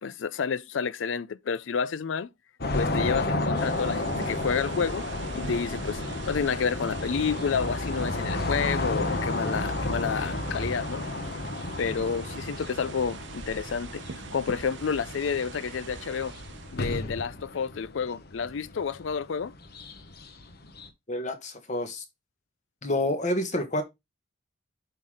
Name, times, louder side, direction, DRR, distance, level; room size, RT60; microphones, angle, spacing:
voice 1, 0.0-2.3 2.7-5.1 5.3-6.0 6.3-11.0 11.8-14.0 14.3-16.3 16.7-19.5, left 6 dB, 75° left, 0.5 m, -30 dB
sound 1, 2.6-20.9, left 2 dB, 55° left, 1.1 m, -32 dB
sound 2, 3.5-17.0, right 4 dB, 65° right, 0.8 m, -43 dB
voice 2, 21.1-22.0 22.8-23.8, left 1 dB, 40° left, 1.5 m, -28 dB
8.1 x 3.9 x 4.9 m
head